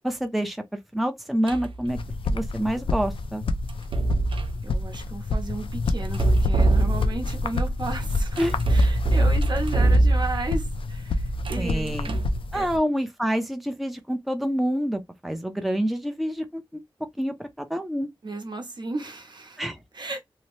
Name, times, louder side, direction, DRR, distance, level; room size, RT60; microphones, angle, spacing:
voice 1, 0.0-2.0 2.3-3.4 8.4-8.5 11.6-12.2 12.5-16.8 17.2-18.1 19.6-19.8, equal, ahead, 0.5 m, -27 dB
sound 1, 1.5-1.8 3.7-4.6 6.1-7.4 8.4-10.6 11.3-12.4, right 2 dB, 70° right, 0.4 m, -23 dB
sound 2, 1.9-12.8, left 2 dB, 75° left, 0.4 m, -28 dB
voice 2, 4.6-12.0 12.5-12.6 18.2-19.6 19.9-20.2, right 2 dB, 55° right, 0.8 m, -34 dB
2.8 x 2.0 x 3.0 m
wide cardioid pair, 75°, 9 cm